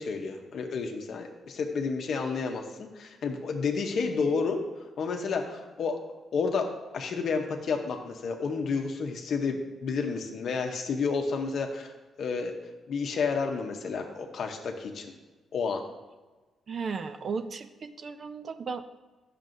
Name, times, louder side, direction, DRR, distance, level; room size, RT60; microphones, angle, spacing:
voice 1, 0.0-4.6 5.0-6.0 6.3-6.7 6.9-11.9 12.2-12.5 12.9-15.1 15.5-15.8, left 5 dB, 60° left, 3 dB, 0.8 m, -30 dB
voice 2, 16.7-18.8, right 5 dB, 45° right, 11 dB, 0.4 m, -35 dB
10.5 x 6.6 x 2.6 m, 1.2 s
cardioid pair, 125°, 0 cm